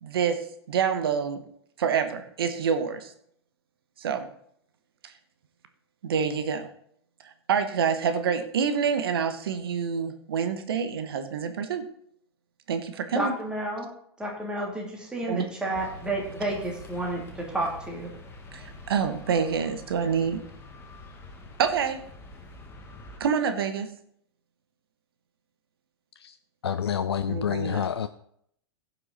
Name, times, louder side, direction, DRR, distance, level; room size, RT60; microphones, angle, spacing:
voice 1, 0.0-0.4 0.7-1.4 1.8-3.1 4.0-4.3 5.0-5.1 6.0-6.7 7.2-11.8 12.7-13.3 15.3-15.5 18.5-20.4 21.6-22.0 23.2-23.9 27.3-27.9, right 7 dB, 60° right, 9 dB, 1.2 m, -27 dB
voice 2, 13.1-13.9 14.2-18.1, right 1 dB, 5° right, -2 dB, 2.7 m, -31 dB
sound 1, 15.7-23.2, left 2 dB, 15° left, 1.7 m, -45 dB
voice 3, 26.6-28.1, left 8 dB, 70° left, 11 dB, 0.5 m, -28 dB
16.0 x 5.8 x 4.0 m, 0.68 s
figure-of-eight pair, 95°, 14 cm